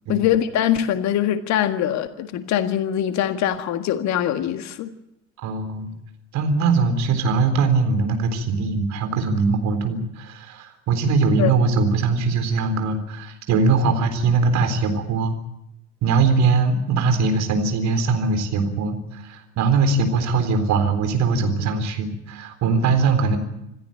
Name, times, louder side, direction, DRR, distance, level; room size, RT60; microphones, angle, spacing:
voice 1, 0.1-4.9 11.4-11.5, left 10 dB, 45° left, 1.7 m, -22 dB
voice 2, 5.4-5.9 6.3-15.4 16.0-23.4, right 4 dB, 45° right, 4.0 m, -21 dB
27.0 x 14.0 x 8.9 m
figure-of-eight pair, 65°, 38 cm